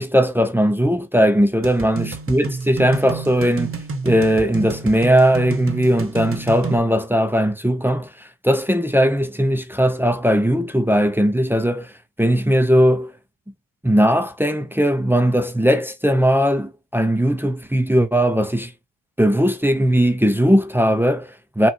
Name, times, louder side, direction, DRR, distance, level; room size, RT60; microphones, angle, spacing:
voice 1, 0.0-3.8 4.0-11.9 12.2-13.1 13.8-18.7 19.2-21.7, equal, 5° right, 0.7 m, -18 dB
sound 1, 1.6-6.8, right 5 dB, 30° right, 1.2 m, -30 dB
4.5 x 2.6 x 4.4 m
cardioid pair, 90°, 47 cm